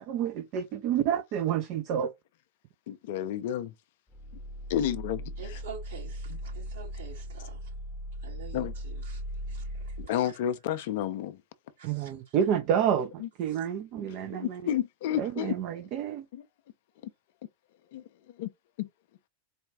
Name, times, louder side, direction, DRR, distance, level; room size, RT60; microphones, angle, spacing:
voice 1, 0.1-2.1 11.8-14.6 15.2-16.3, right 9 dB, 40° right, 0.5 m, -29 dB
voice 2, 2.9-3.7 4.7-5.6 6.3-6.4 8.5-8.7 10.0-11.4 13.2-13.3 14.3-15.5 16.3-16.4 17.9-18.5 18.8-18.9, left 10 dB, 50° left, 0.4 m, -31 dB
sound 1, 4.1-10.1, equal, 5° left, 0.8 m, -38 dB
voice 3, 5.4-7.7 8.2-9.2 9.5-10.0 10.2-10.3 11.8-12.1 13.5-13.6, right 6 dB, 65° right, 2.2 m, -47 dB
4.1 x 2.3 x 3.4 m
figure-of-eight pair, 90°, 0 cm